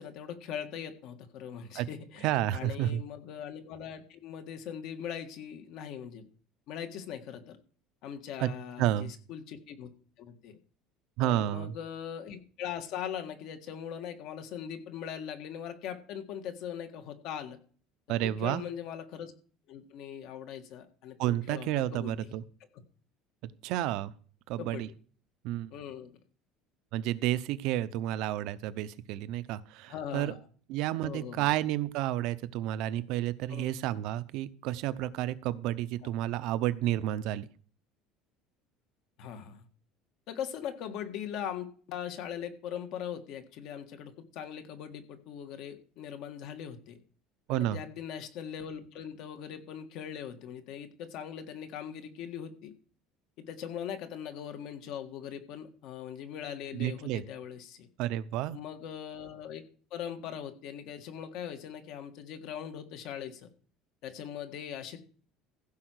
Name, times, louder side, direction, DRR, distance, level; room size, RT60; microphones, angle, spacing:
voice 1, 0.0-6.2 6.7-7.6 8.0-9.9 10.2-10.6 11.2-17.6 18.2-19.3 19.7-22.3 22.7-22.8 24.6-24.8 25.7-26.1 29.9-30.4 31.0-31.5 33.5-33.8 39.2-39.6 40.3-47.0 47.5-52.7 53.4-57.9 58.5-59.6 59.9-63.5 64.0-65.0, left 9 dB, 55° left, 7 dB, 1.7 m, -40 dB
voice 2, 2.2-3.0 8.4-8.5 8.8-9.1 11.2-11.8 18.1-18.6 21.2-22.4 23.4-24.1 24.5-24.9 25.4-25.7 26.9-30.3 30.7-37.5 47.5-47.8 56.7-57.2 58.0-58.6, right 13 dB, 60° right, 15 dB, 0.7 m, -31 dB
15.5 x 5.7 x 6.3 m, 0.43 s
cardioid pair, 155°, 0 cm